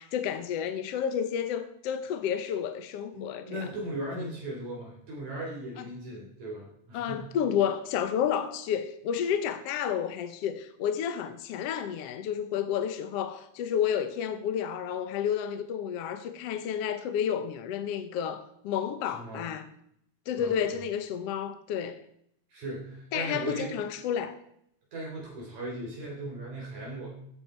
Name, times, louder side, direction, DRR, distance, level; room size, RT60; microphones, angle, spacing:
voice 1, 0.0-3.7 4.2-4.3 5.8-5.9 6.9-19.7 20.3-22.0 23.1-24.4, left 8 dB, 60° left, 1.8 m, -31 dB
voice 2, 3.1-7.3 19.1-19.4 20.4-20.8 22.5-23.7 24.9-27.1, right 1 dB, 60° right, 4.9 m, -38 dB
16.0 x 10.5 x 4.5 m
omnidirectional pair, 3.7 m